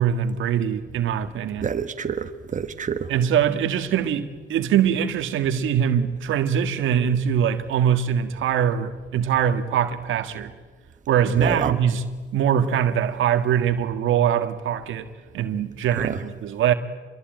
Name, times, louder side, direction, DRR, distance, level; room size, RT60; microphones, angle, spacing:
voice 1, 0.0-1.7 3.1-10.5 11.1-12.0 12.3-15.1 15.3-16.7, right 8 dB, 80° right, 1.8 m, -22 dB
voice 2, 1.6-3.1 11.4-11.8 16.0-16.2, right 6 dB, 40° right, 1.5 m, -27 dB
27.5 x 22.0 x 9.2 m
cardioid pair, 90°, 20 cm